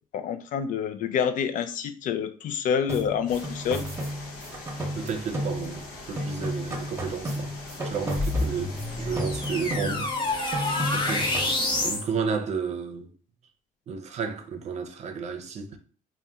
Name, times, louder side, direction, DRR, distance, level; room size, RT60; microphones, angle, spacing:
voice 1, 0.1-3.8, left 7 dB, 65° left, 0.4 m, -27 dB
sound 1, 2.9-5.9 6.2-8.9 9.2-10.2 10.5-11.6, equal, 20° right, 0.8 m, -33 dB
sound 2, 3.3-9.8, left 2 dB, 85° left, 0.9 m, -43 dB
voice 2, 4.9-10.1 10.9-11.5 11.8-13.1 13.9-15.8, right 6 dB, 50° right, 0.6 m, -32 dB
sound 3, 8.1-12.1, left 2 dB, 35° left, 1.0 m, -28 dB
2.8 x 2.2 x 3.5 m
cardioid pair, 110°, 15 cm